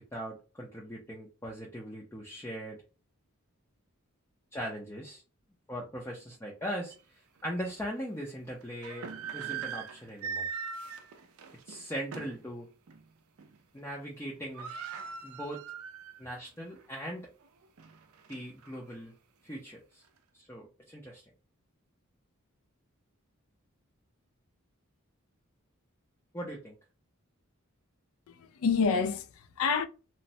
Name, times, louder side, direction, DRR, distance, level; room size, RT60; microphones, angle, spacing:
voice 1, 0.1-2.8 4.5-5.2 5.7-6.9 7.4-10.5 11.6-12.7 13.7-14.7 15.2-15.6 16.2-17.3 18.3-19.1 19.4-20.0 20.3-21.2 26.3-26.8, equal, 10° left, 0.5 m, -39 dB
sound 1, 6.9-7.0 7.6-7.7 8.6-12.5 12.9-13.0 13.4-13.8 14.1-14.2 14.3-16.3 16.7-16.8 17.4-18.8, right 6 dB, 80° right, 0.4 m, -41 dB
voice 2, 28.3-29.9, left 5 dB, 75° left, 0.4 m, -28 dB
3.0 x 2.0 x 2.6 m
head